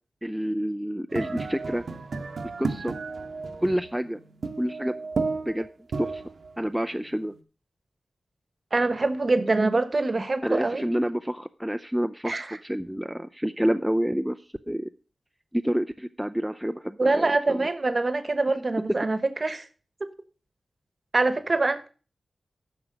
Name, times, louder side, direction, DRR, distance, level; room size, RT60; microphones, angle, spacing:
voice 1, 0.2-1.8 2.6-2.9 3.6-4.2 4.6-4.9 5.5-5.7 6.0-6.2 6.6-7.3 10.4-14.9 15.5-17.7, equal, 5° right, 0.4 m, -28 dB
sound 1, 1.1-7.4, right 4 dB, 65° right, 0.9 m, -33 dB
voice 2, 8.7-10.9 12.2-12.6 17.0-19.7 20.0-20.1 21.1-21.9, right 3 dB, 35° right, 1.0 m, -24 dB
9.9 x 6.1 x 6.4 m
wide cardioid pair, 130°, 0 cm